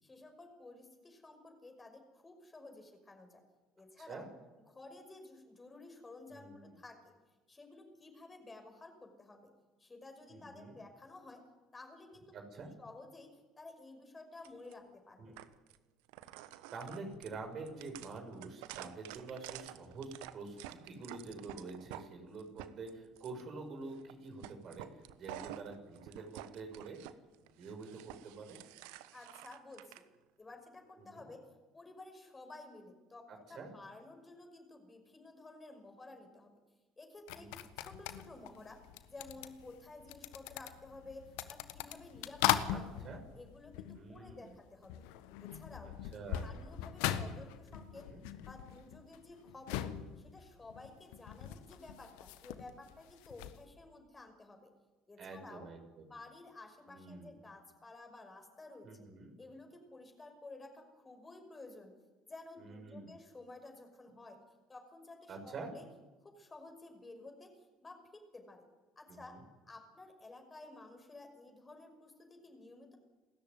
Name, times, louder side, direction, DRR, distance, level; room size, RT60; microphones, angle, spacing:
voice 1, 0.0-3.4 3.8-4.3 4.7-7.1 7.5-9.5 9.8-11.4 11.7-12.4 12.8-15.4 29.1-29.9 30.4-33.2 33.5-36.5 37.0-38.8 39.1-43.0 43.3-45.0 45.4-45.9 46.4-48.1 48.5-49.9 50.2-54.7 55.1-55.7 56.1-59.1 59.4-61.9 62.3-64.4 64.7-65.9 66.2-68.6 69.0-69.4 69.7-73.0, left 2 dB, 20° left, 5 dB, 5.8 m, -53 dB
voice 2, 6.3-6.6 10.3-10.8 12.3-12.7 15.2-15.3 16.3-24.9 25.2-27.0 27.6-28.6 31.1-31.3 33.5-33.7 37.3-37.6 42.7-42.8 43.0-43.2 44.0-44.4 45.8-46.5 47.9-48.2 55.2-56.0 56.9-57.3 58.8-59.3 62.6-63.1 65.3-65.7 69.1-69.4, right 3 dB, 45° right, 4 dB, 6.4 m, -47 dB
sound 1, 14.4-14.7 15.4-15.8 16.1-22.0 22.4-23.4 23.9-24.1 24.4-27.1 27.5-30.0, right 14 dB, 65° right, 1.1 m, -50 dB
sound 2, 37.3-44.6 44.8-53.6, left 12 dB, 65° left, 1.4 m, -40 dB
29.5 x 13.5 x 9.5 m, 1.2 s
figure-of-eight pair, 60°, 0 cm